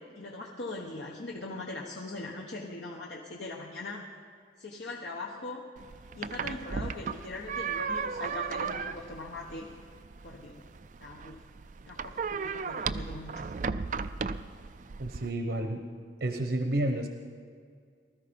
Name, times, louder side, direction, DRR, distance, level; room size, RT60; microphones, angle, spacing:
voice 1, 0.1-4.1 4.6-5.6 6.1-9.7 10.2-10.6 11.0-11.4 11.9-13.4, left 2 dB, 75° left, -1 dB, 1.3 m, -40 dB
sound 1, 5.8-15.3, right 5 dB, 40° right, 0.4 m, -36 dB
voice 2, 15.0-15.8 16.2-17.1, right 1 dB, 70° right, 5 dB, 1.1 m, -30 dB
19.0 x 13.5 x 5.3 m, 2.1 s
head